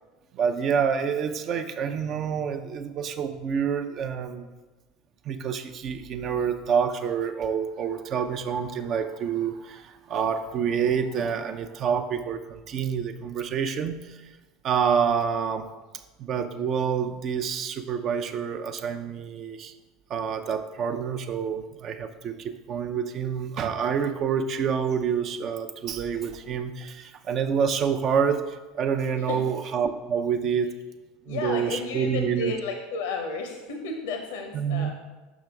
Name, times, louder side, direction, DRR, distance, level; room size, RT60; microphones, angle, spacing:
voice 1, 0.3-4.5 5.2-14.2 14.6-15.7 16.2-19.7 20.1-30.7 31.3-32.5 34.5-34.9, right 7 dB, 45° right, 8 dB, 0.5 m, -27 dB
voice 2, 31.3-34.9, left 4 dB, 70° left, 4 dB, 0.7 m, -32 dB
6.3 x 6.0 x 3.4 m, 1.2 s
hypercardioid pair, 75°, 0 cm